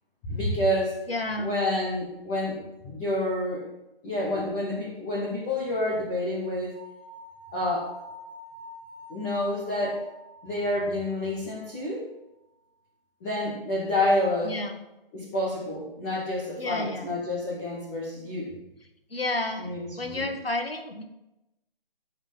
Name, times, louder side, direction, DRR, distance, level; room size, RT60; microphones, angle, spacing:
voice 1, 0.3-0.9 1.4-3.6 4.0-6.7 7.5-7.9 9.1-10.0 10.4-12.1 13.2-14.5 15.1-18.5 19.6-20.3, left 1 dB, 5° left, -7 dB, 0.7 m, -28 dB
voice 2, 1.1-1.5 14.4-14.8 16.6-17.1 19.1-19.7 20.0-21.0, left 2 dB, 80° left, 6 dB, 1.9 m, -30 dB
sound 1, 6.7-11.8, equal, 15° right, 2.5 m, -47 dB
14.0 x 5.7 x 5.5 m, 0.93 s
figure-of-eight pair, 155°, 29 cm